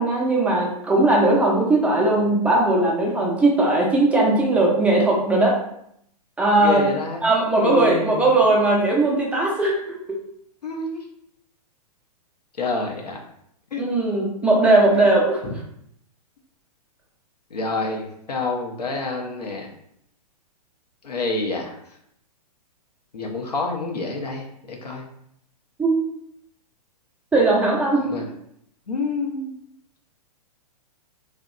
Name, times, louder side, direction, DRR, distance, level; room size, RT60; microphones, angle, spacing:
voice 1, 0.0-5.5 6.4-6.8 7.2-10.0 13.8-15.4 25.8-26.0 27.3-28.1, right 2 dB, 5° right, -3 dB, 0.3 m, -19 dB
voice 2, 6.6-7.2 7.6-8.3 10.6-11.0 12.6-13.2 13.7-13.9 14.4-14.5 17.5-19.7 21.0-21.8 23.1-25.1 28.0-28.3 28.9-29.5, left 3 dB, 90° left, 1 dB, 0.6 m, -28 dB
2.7 x 2.1 x 2.3 m, 0.73 s
hypercardioid pair, 115°, 20 cm